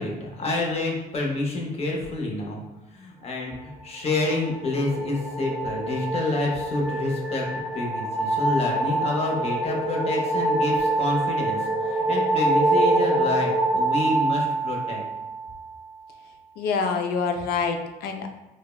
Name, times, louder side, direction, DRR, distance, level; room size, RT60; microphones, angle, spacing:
voice 1, 0.0-2.6 2.9-7.4 7.7-15.0, left 2 dB, 35° left, -1 dB, 0.7 m, -28 dB
sound 1, 4.1-15.5, right 2 dB, ahead, 0.4 m, -25 dB
voice 2, 16.6-18.3, left 5 dB, 65° left, 5 dB, 0.4 m, -26 dB
3.3 x 2.0 x 2.2 m, 1.1 s
cardioid pair, 110°, 17 cm